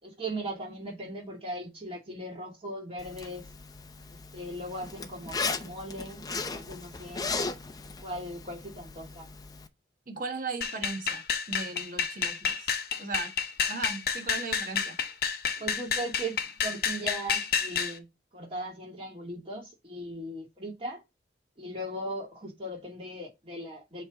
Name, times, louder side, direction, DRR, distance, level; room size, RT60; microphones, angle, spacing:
voice 1, 0.0-3.4 4.1-7.3 8.0-9.3 15.6-18.1 18.3-21.0 21.6-24.0, right 1 dB, 30° right, 2.6 m, -38 dB
Zipper (clothing), 3.0-9.7, left 4 dB, 20° left, 0.5 m, -37 dB
voice 2, 10.1-13.3 13.7-15.0 15.6-15.7, right 3 dB, 45° right, 1.4 m, -37 dB
sound 1, 10.6-18.0, left 6 dB, 55° left, 0.7 m, -30 dB
7.8 x 3.3 x 3.7 m
head